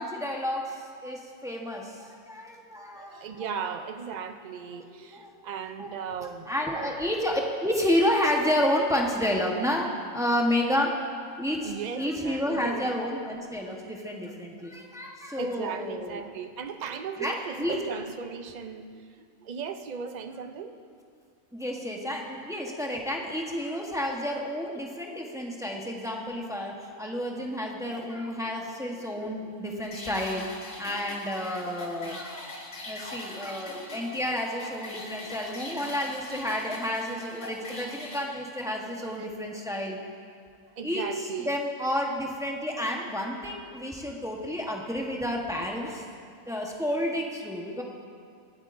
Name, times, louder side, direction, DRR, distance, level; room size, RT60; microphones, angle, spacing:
voice 1, 0.0-3.1 3.6-3.7 4.6-5.4 5.8-6.1 6.5-11.1 11.4-16.2 17.2-17.7 21.5-32.5 32.8-40.0 40.8-41.1 41.4-46.0 46.5-47.8, left 1 dB, 5° right, -1 dB, 0.9 m, -30 dB
voice 2, 2.9-7.0 10.7-10.8 11.6-13.0 14.3-14.4 15.4-20.7 29.1-29.3 38.2-38.4 39.1-39.6 40.6-41.6, right 6 dB, 60° right, 8 dB, 0.4 m, -37 dB
sound 1, 29.8-38.2, left 2 dB, 60° left, 2.0 m, -42 dB
23.0 x 9.0 x 2.6 m, 2.2 s
omnidirectional pair, 1.4 m